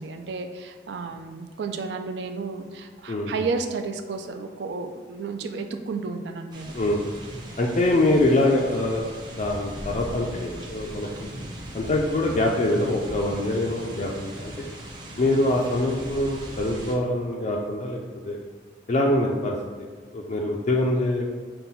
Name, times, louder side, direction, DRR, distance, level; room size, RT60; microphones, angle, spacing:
voice 1, 0.0-6.7, right 4 dB, 60° right, 6 dB, 0.4 m, -32 dB
voice 2, 3.1-3.5 6.7-7.0 7.6-11.3 11.7-14.7 15.2-18.0 18.3-18.4 18.9-19.6 20.1-21.2, left 1 dB, 40° left, -2 dB, 0.4 m, -24 dB
sound 1, 6.5-16.9, right 1 dB, 25° right, 0.6 m, -39 dB
5.6 x 2.2 x 4.0 m, 1.5 s
head